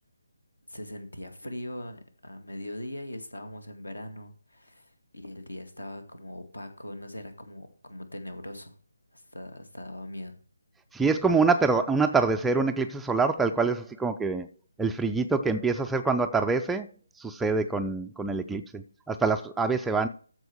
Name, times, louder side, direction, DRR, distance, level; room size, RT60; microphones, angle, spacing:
voice 1, 0.7-8.8 9.1-10.3, left 1 dB, 70° left, 2.1 m, -41 dB
voice 2, 10.9-14.5 14.8-16.9 17.2-20.1, right 4 dB, 5° right, 0.4 m, -25 dB
14.0 x 4.8 x 4.6 m
figure-of-eight pair, 150°, 0 cm